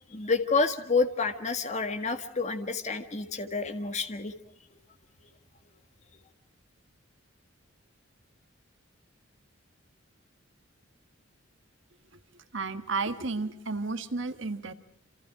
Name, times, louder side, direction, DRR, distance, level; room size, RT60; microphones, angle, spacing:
voice 1, 0.1-4.3, left 4 dB, 35° left, 7 dB, 1.7 m, -29 dB
voice 2, 12.5-14.7, right 3 dB, 65° right, 9 dB, 1.5 m, -32 dB
28.0 x 27.5 x 5.0 m, 0.65 s
head